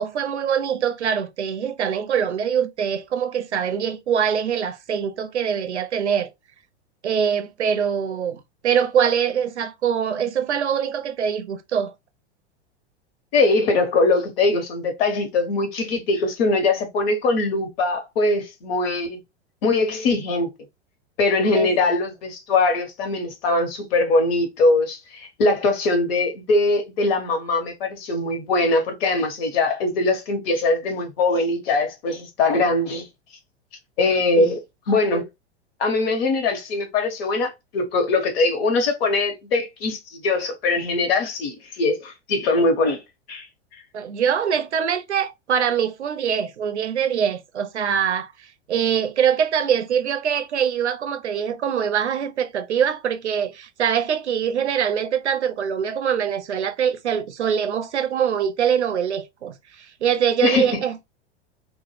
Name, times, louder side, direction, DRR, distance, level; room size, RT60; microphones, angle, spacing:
voice 1, 0.0-6.3 7.0-11.9 21.5-21.9 34.4-34.6 43.9-48.3 48.7-61.0, right 8 dB, 90° right, 0.5 m, -23 dB
voice 2, 13.3-19.2 19.6-20.5 21.2-33.1 34.0-34.6 34.9-35.2 35.8-43.0 43.3-43.5 60.4-60.8, left 3 dB, 60° left, 1.0 m, -21 dB
2.2 x 2.0 x 3.1 m
hypercardioid pair, 95°, 33 cm